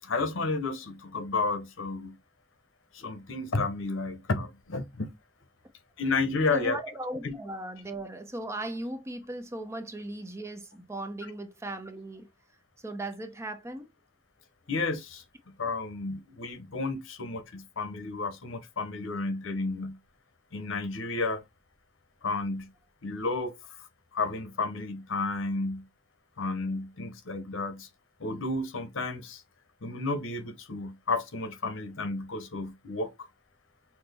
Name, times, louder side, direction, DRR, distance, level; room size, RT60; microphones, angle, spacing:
voice 1, 0.0-2.2 2.9-5.1 6.0-6.8 7.2-7.4 14.7-20.0 20.5-21.4 22.2-22.7 23.0-25.9 26.4-27.9 28.2-29.4 29.8-33.3, left 3 dB, 80° left, 0.8 m, -32 dB
voice 2, 6.5-12.3 12.8-13.9, right 1 dB, 15° right, 0.6 m, -37 dB
6.0 x 2.1 x 3.3 m
head